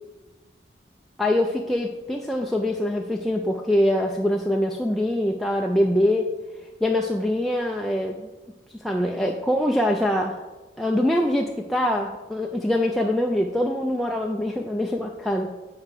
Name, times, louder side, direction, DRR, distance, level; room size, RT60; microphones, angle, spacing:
voice 1, 1.2-6.3 6.8-8.3 8.8-10.4 10.8-15.5, left 1 dB, ahead, 0 dB, 0.3 m, -24 dB
8.6 x 4.8 x 5.0 m, 1.2 s
head